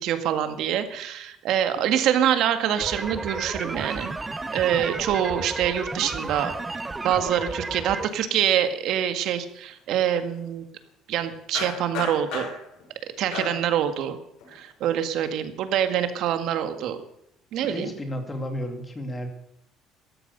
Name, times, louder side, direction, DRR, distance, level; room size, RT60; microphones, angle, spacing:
voice 1, 0.0-4.1 4.5-6.6 7.0-10.6 11.1-12.5 13.2-14.2 14.5-17.0 17.5-17.9, right 10 dB, 60° right, 9 dB, 1.8 m, -25 dB
sound 1, 2.8-8.1, right 3 dB, 15° right, 0.7 m, -33 dB
sound 2, 7.7-7.8 8.1-8.4 11.5-12.9 13.3-13.8 14.4-14.6, left 5 dB, 75° left, 6.1 m, -34 dB
voice 2, 17.6-19.3, equal, 15° left, 5 dB, 2.5 m, -32 dB
14.0 x 13.5 x 6.8 m, 0.76 s
cardioid pair, 150°, 0 cm